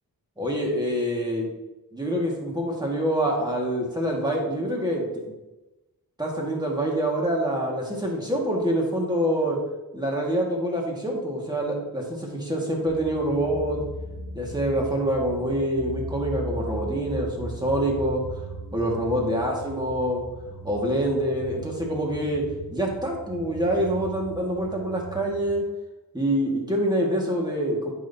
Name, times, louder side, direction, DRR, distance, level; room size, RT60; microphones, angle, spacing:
voice 1, 0.4-1.5 1.9-5.0 6.2-9.6 9.9-13.8 14.3-18.2 18.7-20.2 20.6-22.4 22.7-25.6 26.1-27.9, right 1 dB, 10° right, -2 dB, 1.7 m, -26 dB
sound 1, 12.9-25.5, right 2 dB, 75° right, 1.5 m, -38 dB
9.2 x 6.2 x 2.7 m, 1.1 s
wide cardioid pair, 100°, 37 cm